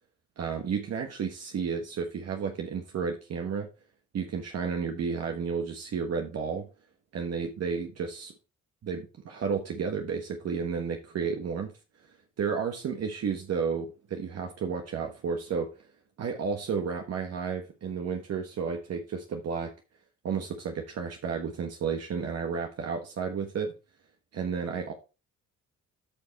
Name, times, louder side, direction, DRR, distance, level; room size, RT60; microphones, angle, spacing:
voice 1, 0.4-3.7 4.1-6.7 7.1-8.3 8.8-11.7 12.4-15.7 16.2-19.7 20.2-23.7 24.3-24.9, right 6 dB, 55° right, 1.3 m, -32 dB
8.6 x 5.4 x 4.2 m
cardioid pair, 90°, 30 cm